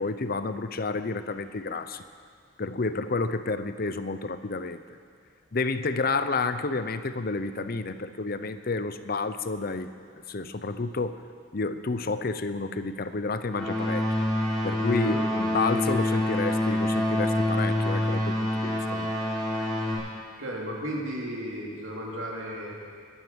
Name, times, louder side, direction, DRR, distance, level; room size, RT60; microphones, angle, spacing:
voice 1, 0.0-2.0 2.6-4.8 5.5-9.9 10.3-11.2 11.5-14.1 14.6-19.1, left 3 dB, 50° left, 11 dB, 0.7 m, -30 dB
sound 1, 13.5-19.9, left 1 dB, 5° left, 5.8 m, -26 dB
voice 2, 20.4-22.7, equal, 85° right, -2 dB, 3.2 m, -34 dB
21.0 x 9.8 x 7.0 m, 2.2 s
head